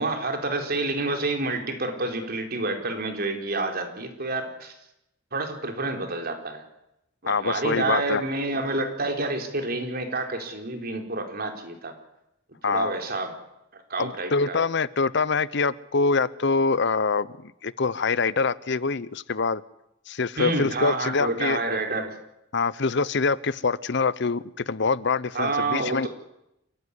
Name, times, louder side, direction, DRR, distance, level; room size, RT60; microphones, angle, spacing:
voice 1, 0.0-4.7 5.3-6.6 7.2-11.9 12.7-13.3 13.9-14.6 20.4-22.1 25.3-26.1, right 2 dB, 50° right, 4 dB, 4.2 m, -28 dB
voice 2, 7.3-8.2 12.6-12.9 14.0-19.6 20.1-21.6 22.5-26.1, left 4 dB, 60° left, 18 dB, 0.8 m, -25 dB
27.5 x 15.5 x 9.9 m, 0.85 s
head